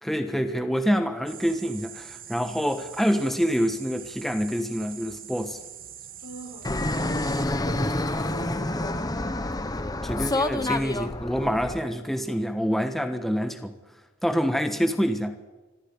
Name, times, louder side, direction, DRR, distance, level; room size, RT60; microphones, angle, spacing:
voice 1, 0.0-5.6 10.0-13.7 14.2-15.4, equal, ahead, 7 dB, 1.2 m, -26 dB
sound 1, 1.3-7.5, right 9 dB, 45° right, 2.4 m, -43 dB
voice 2, 6.2-9.3, equal, 85° left, 2 dB, 6.8 m, -42 dB
Fixed-wing aircraft airplane, 6.6-11.8, left 2 dB, 20° left, 1.0 m, -28 dB
24.5 x 14.5 x 9.6 m, 1.2 s
head